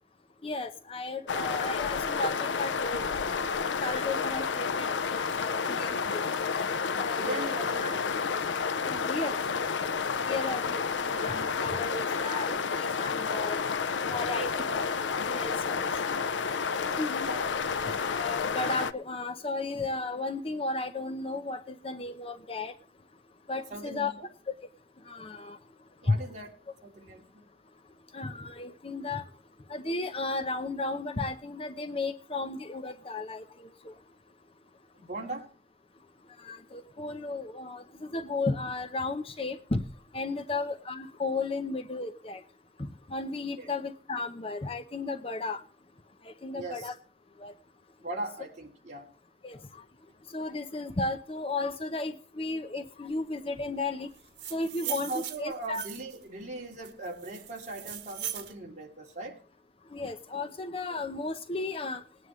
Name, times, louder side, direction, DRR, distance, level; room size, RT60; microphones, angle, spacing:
voice 1, 0.4-6.2 6.9-7.5 7.8-7.9 8.9-9.4 10.3-13.6 14.1-14.5 14.8-14.9 15.3-15.9 17.0-17.3 18.1-22.7 23.5-24.1 25.1-25.6 26.1-26.2 28.1-29.2 29.7-33.9 36.4-39.8 40.1-42.4 42.8-45.6 46.2-47.0 47.4-47.5 49.4-49.6 50.3-54.1 54.5-55.8 59.9-62.0, left 3 dB, 30° left, 8 dB, 0.7 m, -34 dB
sound 1, 1.3-18.9, left 5 dB, 90° left, 0.6 m, -30 dB
voice 2, 7.1-8.0 14.0-14.9 15.7-16.0 17.2-17.4 23.7-24.3 26.0-26.5 26.8-27.4 35.0-35.5 43.6-43.7 46.5-46.9 48.0-49.1 54.8-59.4 60.9-61.0, right 2 dB, 40° right, -1 dB, 3.0 m, -40 dB
sound 2, 54.2-56.2 56.8-58.5, right 11 dB, 80° right, 1.4 m, -39 dB
20.0 x 9.5 x 3.1 m, 0.39 s
head